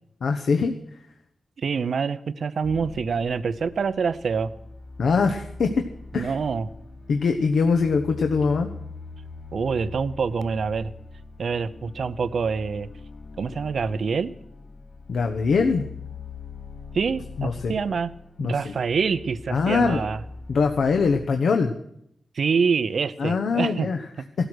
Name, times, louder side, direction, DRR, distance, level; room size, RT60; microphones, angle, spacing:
voice 1, 0.2-0.7 5.0-5.7 6.1-6.3 7.1-8.7 15.1-15.8 17.4-17.7 18.4-18.7 19.5-20.0 20.5-21.7 23.2-24.0, left 5 dB, 75° left, 5 dB, 1.1 m, -22 dB
voice 2, 1.6-4.5 6.2-6.7 9.5-10.9 11.4-12.9 13.4-14.3 16.9-18.1 18.4-20.2 22.3-23.9, right 5 dB, 60° right, 16 dB, 0.7 m, -26 dB
sound 1, 2.6-21.3, left 4 dB, 50° left, 4.2 m, -42 dB
17.0 x 13.0 x 6.3 m, 0.75 s
wide cardioid pair, 150°, 0 cm